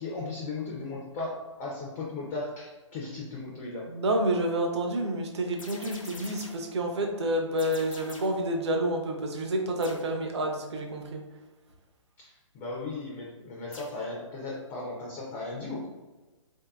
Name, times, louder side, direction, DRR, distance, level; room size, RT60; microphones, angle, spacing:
voice 1, 0.0-3.9 12.2-15.9, left 3 dB, 15° left, -3 dB, 0.3 m, -36 dB
voice 2, 3.9-11.2, right 1 dB, 55° right, 2 dB, 0.6 m, -29 dB
sound 1, 5.6-6.7 7.6-8.5 9.8-10.2 13.7-14.1, left 2 dB, 85° left, 0.8 m, -46 dB
3.2 x 2.7 x 2.3 m, 1.2 s
figure-of-eight pair, 130°, 16 cm